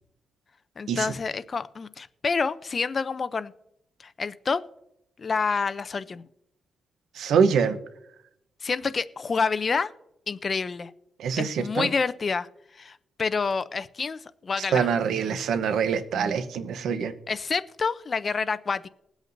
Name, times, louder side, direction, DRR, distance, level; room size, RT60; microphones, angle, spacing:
voice 1, 0.8-3.5 4.0-4.6 5.2-6.2 8.6-9.9 10.3-10.9 11.3-12.5 12.7-14.9 17.3-18.9, left 5 dB, 40° left, 15 dB, 0.5 m, -28 dB
voice 2, 7.2-7.8 11.2-11.9 14.7-17.1, right 6 dB, 85° right, 10 dB, 0.9 m, -24 dB
21.0 x 8.1 x 2.6 m, 0.81 s
cardioid pair, 90°, 0 cm